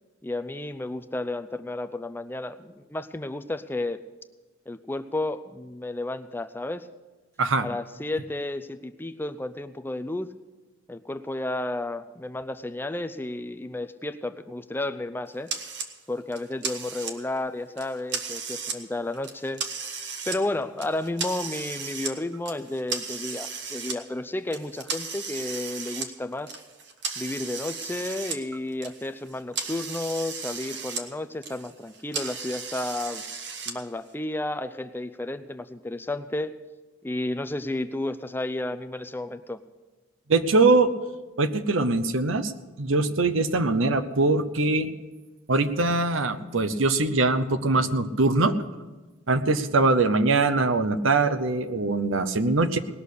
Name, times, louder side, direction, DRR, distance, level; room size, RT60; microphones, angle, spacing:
voice 1, 0.2-4.0 4.7-6.9 7.6-10.3 10.9-15.5 16.1-20.0 20.3-26.6 27.2-33.2 33.7-36.5 37.0-39.6, left 2 dB, 10° left, 9 dB, 0.4 m, -32 dB
sound 1, 15.5-15.9 16.3-17.4 17.8-18.8 19.1-20.4 20.8-22.1 22.5-24.0 24.5-28.4 28.7-31.0 31.3-33.7, right 5 dB, 60° right, 1.3 m, -35 dB
voice 2, 40.3-40.9 41.4-42.5 42.8-44.9 45.5-48.6 49.3-52.8, right 3 dB, 75° right, 11 dB, 0.8 m, -22 dB
19.0 x 6.5 x 8.4 m, 1.2 s
head